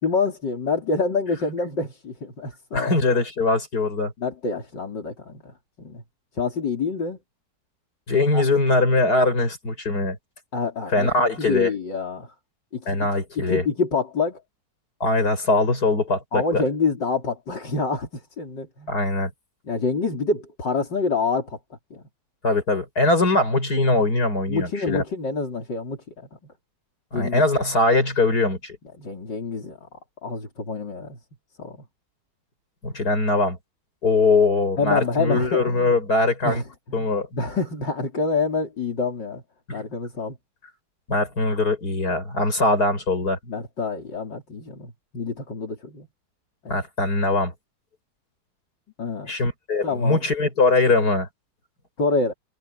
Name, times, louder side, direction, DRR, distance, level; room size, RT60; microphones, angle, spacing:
voice 1, 0.0-3.0 4.2-6.0 6.4-7.2 8.3-8.4 10.5-12.3 12.7-13.0 13.4-14.4 16.3-18.9 19.7-21.6 21.9-22.0 24.5-26.3 27.1-27.4 29.0-29.8 30.2-31.2 31.6-31.8 34.8-35.9 36.4-36.6 36.9-39.4 39.7-40.4 43.5-46.1 46.6-46.8 49.0-49.3 49.8-50.2 52.0-52.3, left 4 dB, 80° left, 4.4 m, -27 dB
voice 2, 2.7-4.1 8.1-10.2 10.9-11.7 12.9-13.6 15.0-16.6 18.9-19.3 22.4-25.0 27.1-28.8 32.8-33.6 34.0-36.6 36.9-37.3 39.7-39.8 41.1-43.4 46.7-47.5 49.3-51.3, left 2 dB, 60° left, 6.8 m, -21 dB
omnidirectional pair, 1.9 m